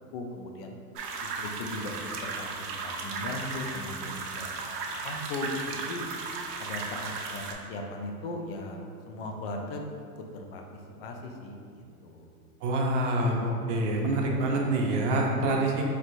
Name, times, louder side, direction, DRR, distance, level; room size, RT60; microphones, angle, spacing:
voice 1, 0.1-0.7 1.2-6.0 6.6-8.8 9.1-9.9 10.2-10.6 11.0-12.3, left 2 dB, 40° left, 2 dB, 0.4 m, -38 dB
sound 1, 0.9-7.5, right 4 dB, 90° right, 0.7 m, -36 dB
voice 2, 12.6-15.8, right 1 dB, 50° right, -1 dB, 0.7 m, -26 dB
4.3 x 3.1 x 2.5 m, 2.4 s
supercardioid pair, 145°, 46 cm